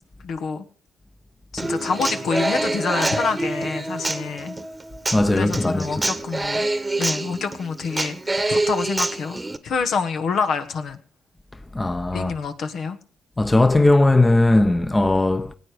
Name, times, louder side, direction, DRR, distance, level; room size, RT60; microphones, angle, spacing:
voice 1, 0.2-0.6 1.5-4.6 5.3-6.7 7.0-9.4 9.6-11.0 12.1-13.0, left 5 dB, 65° left, 1.4 m, -27 dB
Human voice / Acoustic guitar, 1.6-9.6, right 2 dB, 20° right, 1.2 m, -26 dB
voice 2, 5.1-6.2 11.7-12.3 13.4-15.5, left 2 dB, 20° left, 1.0 m, -18 dB
18.5 x 8.6 x 5.0 m
supercardioid pair, 55°, 0 cm